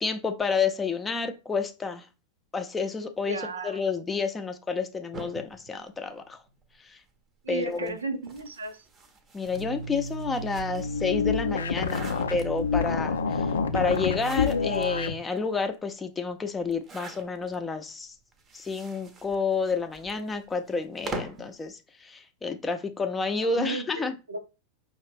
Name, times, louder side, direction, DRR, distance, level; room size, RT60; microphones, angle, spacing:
voice 1, 0.0-2.1 2.5-6.4 6.8-7.0 7.5-8.0 9.3-18.1 18.5-24.1, left 4 dB, 15° left, 0.6 m, -30 dB
voice 2, 3.2-3.8 7.4-8.8 23.4-24.4, right 3 dB, 75° right, 0.6 m, -34 dB
sound 1, 5.1-6.7 7.6-11.0 11.5-12.9 13.9-14.9 15.4-15.5 15.7-15.8 16.7-17.6 18.3-21.5, right 2 dB, 25° right, 0.7 m, -43 dB
sound 2, 9.5-15.2, left 5 dB, 65° left, 0.4 m, -28 dB
5.5 x 2.5 x 3.4 m
figure-of-eight pair, 90°, 0 cm